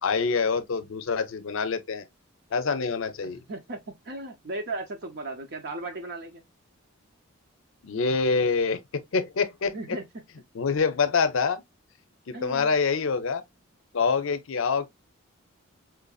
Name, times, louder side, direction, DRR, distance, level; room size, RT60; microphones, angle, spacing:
voice 1, 0.0-2.0 2.5-3.4 7.8-10.0 10.5-11.6 12.3-13.4 13.9-14.9, left 5 dB, 70° left, 0.5 m, -26 dB
voice 2, 3.5-3.8 4.1-6.4 9.7-10.0 12.3-12.7, right 2 dB, 50° right, 0.6 m, -36 dB
4.5 x 2.5 x 2.3 m
head